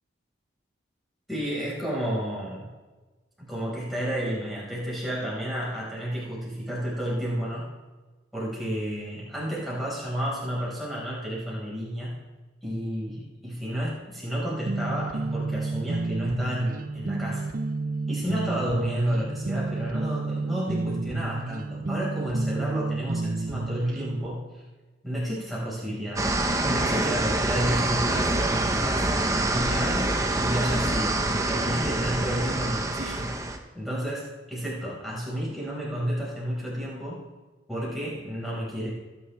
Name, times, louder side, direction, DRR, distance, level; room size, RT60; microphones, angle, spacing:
voice 1, 1.3-2.7 3.4-7.7 8.3-12.2 12.6-17.5 18.1-24.6 25.0-26.3 26.6-33.3 33.7-37.2 37.7-38.9, equal, ahead, -7 dB, 5.1 m, -31 dB
sound 1, 14.7-24.3, right 3 dB, 45° right, 0.5 m, -31 dB
sound 2, 26.2-33.6, right 2 dB, 15° right, 0.9 m, -26 dB
20.5 x 10.5 x 3.5 m, 1.3 s
head